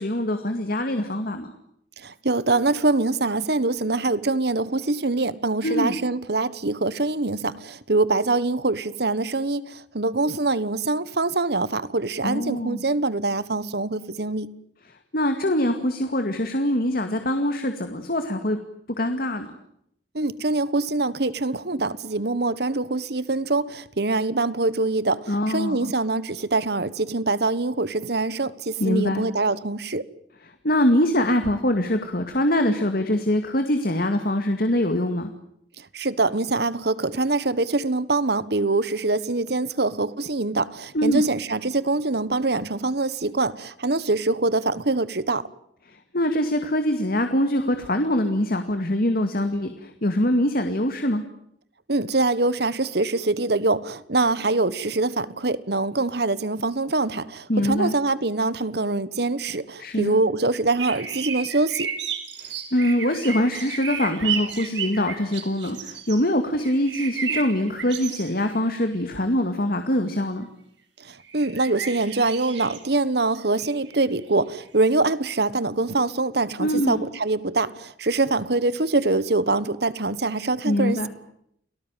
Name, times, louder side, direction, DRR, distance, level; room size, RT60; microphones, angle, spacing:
voice 1, 0.0-1.5 5.6-6.0 12.2-12.8 15.1-18.6 19.0-19.5 25.3-25.9 28.8-29.2 30.6-35.3 40.9-41.2 46.1-51.2 57.5-57.9 59.8-60.2 62.4-70.5 76.6-77.1 80.6-81.1, left 1 dB, 55° left, 2.3 m, -23 dB
voice 2, 2.0-14.5 20.1-30.0 35.9-45.4 51.9-61.9 71.0-81.1, right 3 dB, 60° right, 1.4 m, -24 dB
sound 1, 60.8-66.2 66.6-68.6 68.8-68.9 71.2-72.8 73.4-74.0 74.6-74.8, right 7 dB, 80° right, 5.2 m, -33 dB
30.0 x 19.0 x 9.2 m
head